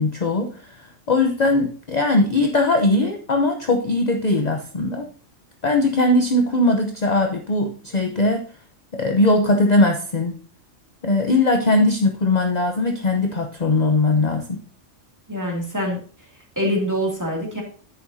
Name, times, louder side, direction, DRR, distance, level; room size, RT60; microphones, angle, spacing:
voice 1, 0.0-5.1 5.6-8.4 8.9-10.4 11.0-14.6, left 2 dB, 40° left, 3 dB, 0.9 m, -20 dB
voice 2, 15.3-16.0 16.6-17.6, equal, 15° right, -1 dB, 2.5 m, -24 dB
10.0 x 8.0 x 2.7 m, 0.41 s
omnidirectional pair, 1.3 m